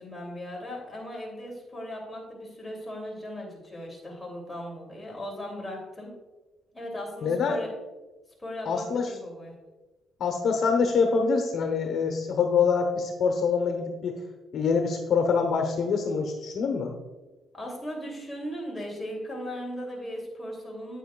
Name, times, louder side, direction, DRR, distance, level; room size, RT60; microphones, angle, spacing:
voice 1, 0.0-6.1 6.7-7.7 8.4-9.5 17.5-21.0, equal, 15° left, -2 dB, 2.9 m, -37 dB
voice 2, 7.2-7.6 8.6-9.1 10.2-14.2 14.5-16.9, left 5 dB, 65° left, 4 dB, 1.1 m, -25 dB
9.2 x 9.2 x 2.4 m, 1.2 s
cardioid pair, 90°, 0 cm